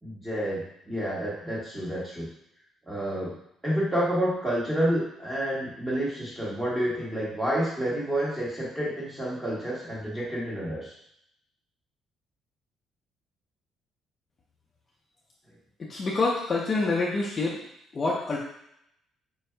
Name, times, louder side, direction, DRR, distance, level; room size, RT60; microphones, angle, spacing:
voice 1, 0.0-2.3 2.9-3.3 3.6-10.9, right 1 dB, 10° right, -6 dB, 1.4 m, -29 dB
voice 2, 15.9-17.6 17.9-18.4, left 3 dB, 25° left, -4 dB, 0.5 m, -26 dB
4.6 x 2.6 x 3.3 m, 0.76 s
cardioid pair, 160°, 0 cm